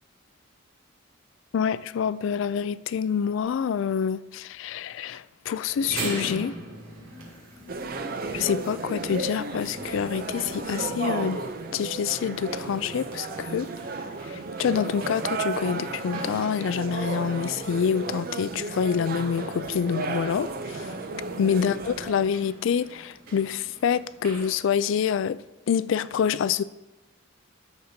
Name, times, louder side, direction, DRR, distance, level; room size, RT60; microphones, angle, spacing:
voice 1, 1.5-6.6 8.3-11.4 11.7-13.7 14.2-20.9 21.4-25.4 25.7-26.6, left 7 dB, 65° left, 0.3 m, -27 dB
sound 1, 5.7-24.5, right 2 dB, 80° right, 3.0 m, -43 dB
sound 2, 6.2-11.9, left 4 dB, 30° left, 0.6 m, -50 dB
sound 3, 7.7-22.3, right 3 dB, 45° right, 0.5 m, -34 dB
13.5 x 6.7 x 2.7 m
head